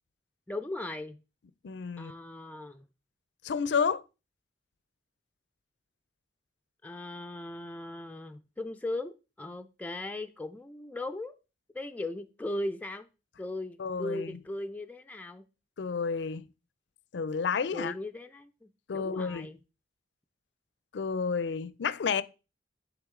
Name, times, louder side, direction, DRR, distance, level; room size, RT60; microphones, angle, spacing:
voice 1, 0.5-1.2 2.0-2.8 6.8-11.3 11.7-13.1 13.4-15.4 17.7-19.6, left 1 dB, 10° left, 0.3 m, -38 dB
voice 2, 1.6-2.1 3.4-4.0 13.8-14.4 15.8-16.4 17.1-17.9 18.9-19.5 20.9-22.2, left 5 dB, 70° left, 0.4 m, -30 dB
10.0 x 3.4 x 3.7 m
head